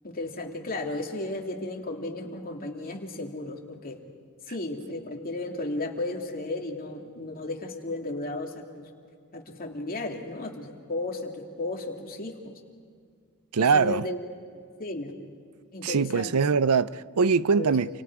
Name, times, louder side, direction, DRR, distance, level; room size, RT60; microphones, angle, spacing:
voice 1, 0.0-4.0 4.5-8.9 9.3-12.6 13.5-14.2 14.8-15.1 15.7-16.3 17.5-17.7, left 2 dB, 40° left, 2.7 m, -34 dB
voice 2, 13.5-14.0 15.8-17.9, right 5 dB, 80° right, 0.6 m, -22 dB
29.5 x 28.5 x 4.8 m
head